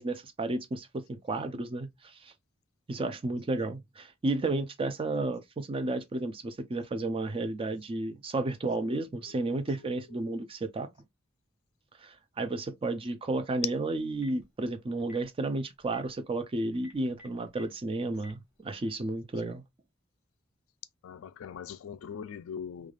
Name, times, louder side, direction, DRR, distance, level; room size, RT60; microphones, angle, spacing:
voice 1, 0.0-2.3 2.9-10.9 12.0-19.6, right 2 dB, 25° right, 0.4 m, -32 dB
voice 2, 9.3-9.7 10.1-10.3 12.4-12.5 21.0-22.9, left 7 dB, 85° left, 0.3 m, -42 dB
Telephone, 14.0-14.4 15.0-15.2 15.8-16.0 16.7-17.6 18.1-18.3, left 1 dB, 5° right, 1.3 m, -51 dB
3.2 x 2.4 x 2.3 m
head